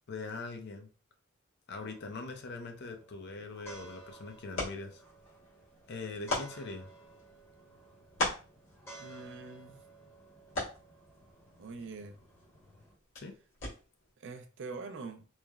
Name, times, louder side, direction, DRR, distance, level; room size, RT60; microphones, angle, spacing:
voice 1, 0.1-0.9 1.7-5.0 5.9-6.9 13.1-13.3, left 3 dB, 55° left, 0.5 m, -42 dB
sound 1, 1.7-12.9, right 2 dB, 15° left, 0.9 m, -55 dB
sound 2, 3.4-14.1, left 2 dB, 70° left, 1.4 m, -42 dB
voice 2, 9.0-9.8 11.6-12.2 14.2-15.3, right 4 dB, 60° right, 0.4 m, -44 dB
3.1 x 2.0 x 2.3 m
head